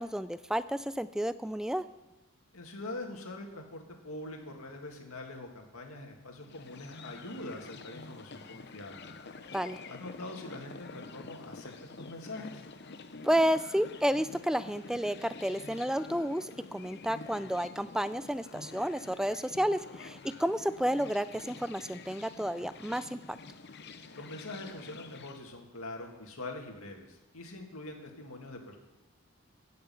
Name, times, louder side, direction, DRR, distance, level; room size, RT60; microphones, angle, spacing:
voice 1, 0.0-1.8 9.5-9.8 13.2-23.2, equal, 5° right, 14 dB, 0.3 m, -31 dB
voice 2, 2.5-9.1 9.9-11.7 12.0-12.6 24.1-28.8, left 2 dB, 80° left, 2 dB, 2.2 m, -43 dB
sound 1, 6.4-25.4, left 3 dB, 50° left, 0.8 m, -48 dB
17.0 x 6.6 x 7.1 m, 1.0 s
head